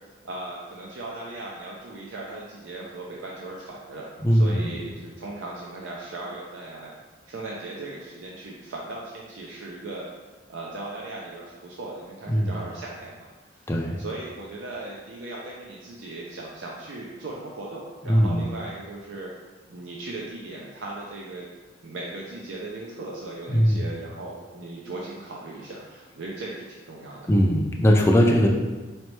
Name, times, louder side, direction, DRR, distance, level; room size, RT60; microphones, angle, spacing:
voice 1, 0.2-7.0 7.3-10.1 10.5-19.3 19.7-21.5 21.8-27.3, right 2 dB, 75° right, -3 dB, 0.5 m, -38 dB
voice 2, 4.2-4.7 12.3-12.5 13.7-14.0 18.1-18.4 23.5-23.9 27.3-28.5, equal, 15° left, 0 dB, 0.3 m, -20 dB
4.0 x 3.2 x 3.1 m, 1.3 s
head